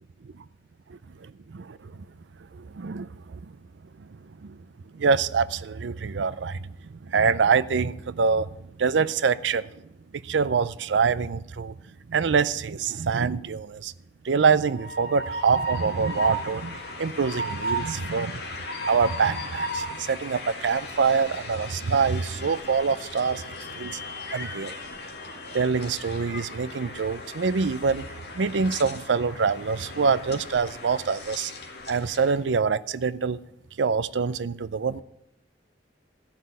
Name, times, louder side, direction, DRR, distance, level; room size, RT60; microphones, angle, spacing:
voice 1, 0.9-2.0 2.7-3.4 4.4-4.5 4.9-8.5 8.8-9.7 10.1-11.7 12.1-13.9 14.2-18.4 18.9-23.4 23.8-24.0 24.3-24.7 25.5-28.1 28.3-31.5 31.9-33.4 33.8-35.0, right 5 dB, 85° right, 0.5 m, -25 dB
Train, 14.6-32.4, equal, 60° left, 2.1 m, -36 dB
14.5 x 5.9 x 9.5 m
head